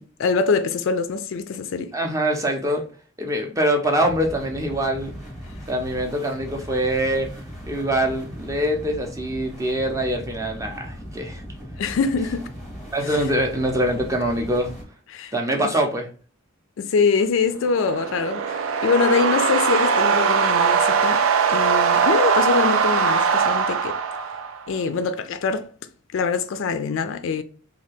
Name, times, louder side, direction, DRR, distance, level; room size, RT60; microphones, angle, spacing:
voice 1, 0.0-1.9 11.8-12.5 15.1-15.7 16.8-24.0 24.7-25.7 26.1-27.4, left 5 dB, 65° left, 0.3 m, -24 dB
voice 2, 1.9-2.9 3.2-5.1 5.7-7.3 7.7-11.4 12.9-14.7 15.3-16.1, right 1 dB, 15° right, 0.5 m, -24 dB
sound 1, 4.0-14.8, equal, ahead, 0.8 m, -38 dB
sound 2, 17.6-24.7, right 6 dB, 75° right, 0.3 m, -20 dB
2.7 x 2.3 x 3.3 m
head